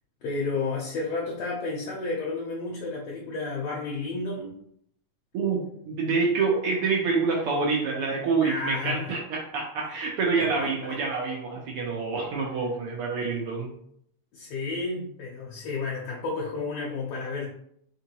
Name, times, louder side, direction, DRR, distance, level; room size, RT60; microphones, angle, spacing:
voice 1, 0.2-4.6 8.4-9.1 9.9-10.0 10.4-11.0 14.3-17.6, left 3 dB, 70° left, -3 dB, 1.8 m, -32 dB
voice 2, 5.3-13.7, right 4 dB, 75° right, -1 dB, 1.3 m, -27 dB
4.7 x 3.7 x 2.9 m, 0.69 s
omnidirectional pair, 3.4 m